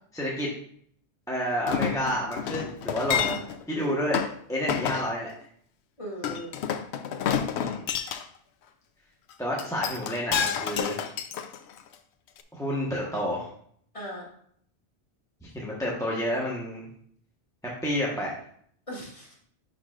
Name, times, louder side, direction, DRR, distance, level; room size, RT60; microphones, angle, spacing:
voice 1, 0.1-0.5 1.3-3.3 3.7-4.2 4.5-5.3 7.6-7.8 9.4-11.0 12.5-13.5 15.4-16.9 17.8-18.3, equal, 5° left, -4 dB, 1.1 m, -29 dB
Chink clink, 1.7-3.6 4.1-4.3 4.7-5.1 6.2-8.2 9.6-11.9 12.4-12.5, left 8 dB, 75° left, 0.8 m, -29 dB
voice 2, 6.0-6.5 13.9-14.3 18.9-19.3, equal, 30° left, -5 dB, 2.3 m, -38 dB
10.5 x 4.7 x 2.4 m, 0.63 s
omnidirectional pair, 1.2 m